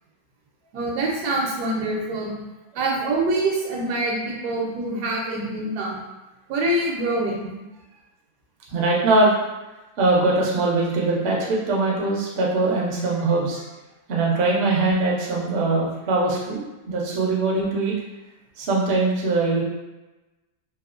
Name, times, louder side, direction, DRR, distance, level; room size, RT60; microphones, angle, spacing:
voice 1, 0.7-2.3 2.7-6.0 6.5-7.5, right 2 dB, 80° right, -2 dB, 1.2 m, -25 dB
voice 2, 8.7-9.4 10.0-13.6 14.1-17.9 18.6-19.6, right 2 dB, 60° right, -4 dB, 0.7 m, -22 dB
2.9 x 2.0 x 2.4 m, 1.1 s
omnidirectional pair, 1.7 m